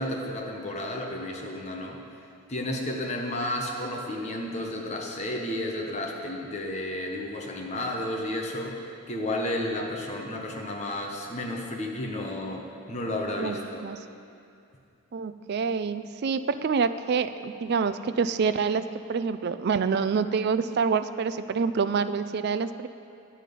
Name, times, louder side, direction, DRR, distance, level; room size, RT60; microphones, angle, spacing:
voice 1, 0.0-2.0 2.5-8.8 9.1-13.8, left 1 dB, 30° left, 0 dB, 1.0 m, -32 dB
voice 2, 13.4-14.0 15.1-22.9, right 5 dB, 45° right, 12 dB, 0.3 m, -27 dB
10.0 x 8.4 x 5.3 m, 2.5 s
head